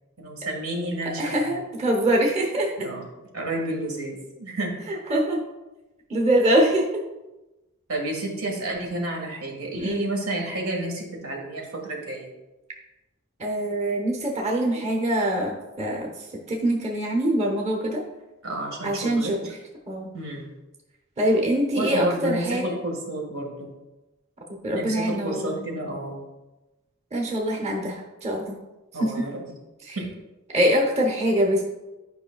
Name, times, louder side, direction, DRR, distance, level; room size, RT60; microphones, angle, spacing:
voice 1, 0.2-1.6 2.8-3.1 3.3-4.7 7.9-12.3 18.4-19.3 20.1-20.5 21.8-23.7 24.7-26.2 28.9-29.3 30.0-30.1, right 1 dB, 90° right, 0 dB, 1.9 m, -30 dB
voice 2, 1.2-2.9 4.9-5.4 6.1-6.9 9.8-10.1 13.4-16.1 16.5-18.0 18.8-19.5 19.9-20.1 21.2-22.6 24.6-25.6 27.1-28.6 29.0-29.3 29.9-30.0 30.5-31.6, right 1 dB, 30° right, 0 dB, 1.0 m, -24 dB
11.0 x 5.2 x 2.3 m, 1.0 s
head